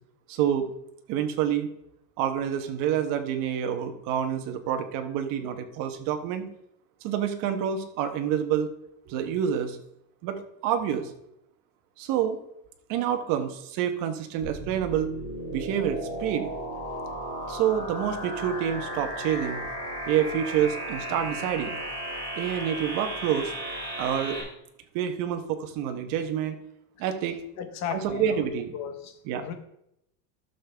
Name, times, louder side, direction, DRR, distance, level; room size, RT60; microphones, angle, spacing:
voice 1, 0.3-0.7 1.1-1.7 2.2-6.5 7.0-8.7 9.1-9.8 10.2-11.1 12.0-12.4 12.9-15.1 15.5-16.5 17.5-19.6 20.1-21.7 22.4-23.5 24.0-24.4 24.9-26.6 27.0-27.4 27.9-28.7 29.3-29.4, right 9 dB, 45° right, 6 dB, 1.1 m, -28 dB
sound 1, 14.4-24.4, right 1 dB, 10° right, 3.8 m, -35 dB
voice 2, 27.6-28.4 28.7-29.5, left 8 dB, 40° left, 7 dB, 1.1 m, -35 dB
12.0 x 6.8 x 3.4 m, 0.79 s
cardioid pair, 170°, 44 cm